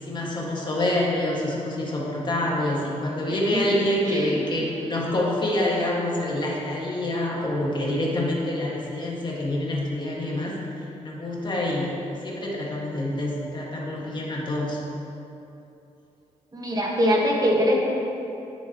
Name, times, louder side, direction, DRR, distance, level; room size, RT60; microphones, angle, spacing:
voice 1, 0.0-10.6 11.0-11.9 12.2-14.8, left 1 dB, 35° left, -4 dB, 1.9 m, -26 dB
voice 2, 3.3-3.6 4.1-4.7 16.5-17.7, equal, 30° right, -2 dB, 1.6 m, -23 dB
10.0 x 7.3 x 3.0 m, 2.9 s
cardioid pair, 75°, 13 cm